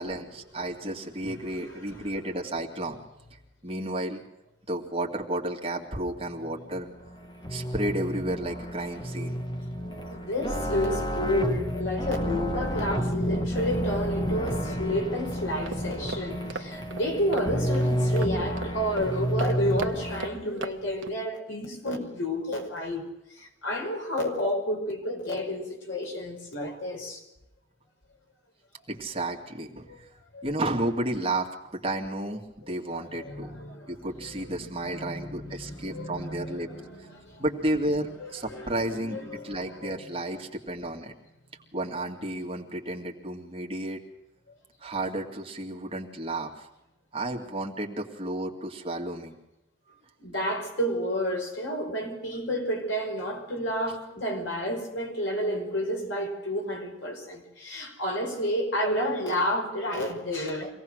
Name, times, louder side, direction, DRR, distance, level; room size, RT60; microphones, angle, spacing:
voice 1, 0.0-3.0 3.3-4.2 4.7-6.9 7.5-9.4 28.9-30.1 30.4-33.5 33.9-36.7 37.0-37.1 37.4-41.1 41.7-44.1 44.8-46.7 47.1-49.4, right 1 dB, 30° right, 2.3 m, -32 dB
voice 2, 1.7-2.1 10.1-27.2 29.9-30.0 30.3-30.5 33.2-37.5 38.2-38.8 39.1-40.0 50.2-60.7, equal, 80° left, 5.4 m, -31 dB
sound 1, 6.4-20.3, equal, 25° left, 2.0 m, -30 dB
sound 2, 15.5-21.2, right 3 dB, 85° right, 1.3 m, -40 dB
25.0 x 18.0 x 6.4 m
head